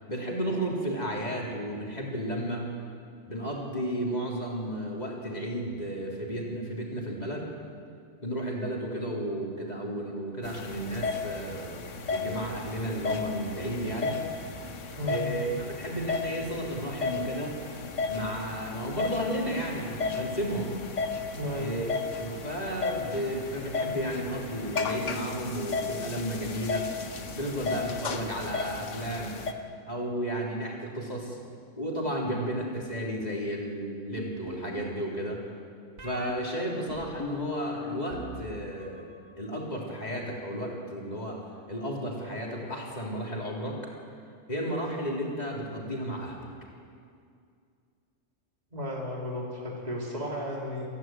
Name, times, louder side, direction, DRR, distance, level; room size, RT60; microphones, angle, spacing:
voice 1, 0.1-2.7 3.3-7.5 8.2-14.2 15.1-17.6 18.1-20.7 21.5-21.9 22.2-26.8 27.3-29.3 29.8-31.4 31.8-35.4 36.0-39.1 39.4-41.4 41.7-43.8 44.5-46.5, right 1 dB, 35° left, -2 dB, 3.7 m, -33 dB
sound 1, 10.4-29.5, left 4 dB, 90° left, 1.5 m, -34 dB
voice 2, 21.3-21.7 48.7-50.9, equal, 35° right, -3 dB, 3.7 m, -34 dB
sound 2, 34.2-35.0 36.0-36.3 36.9-38.4 38.7-39.3, left 1 dB, 70° right, 2.2 m, -39 dB
27.5 x 11.5 x 9.2 m, 2.3 s
omnidirectional pair, 1.2 m